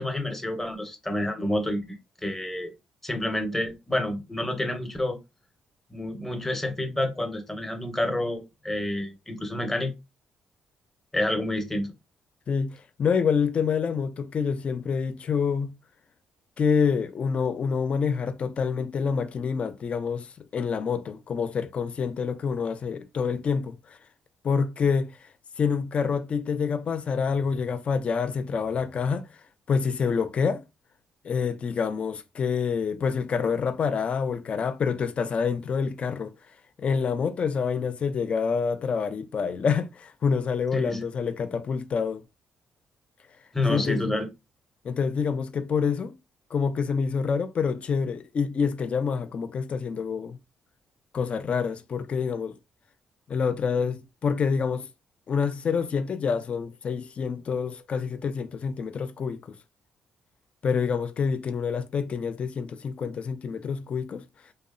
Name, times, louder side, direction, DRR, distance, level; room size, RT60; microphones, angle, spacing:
voice 1, 0.0-1.8 2.2-2.7 3.0-5.2 5.9-9.9 11.1-11.9 40.7-41.1 43.5-44.3, left 1 dB, 10° left, 0.8 m, -28 dB
voice 2, 12.5-15.7 16.6-24.0 24.4-25.3 25.6-29.2 29.7-30.6 31.2-36.3 36.8-42.2 43.7-44.1 44.8-46.1 46.5-50.4 51.1-52.5 53.3-54.9 55.3-59.6 60.6-64.2, left 6 dB, 50° left, 0.4 m, -27 dB
2.7 x 2.0 x 2.5 m
cardioid pair, 75°, 3 cm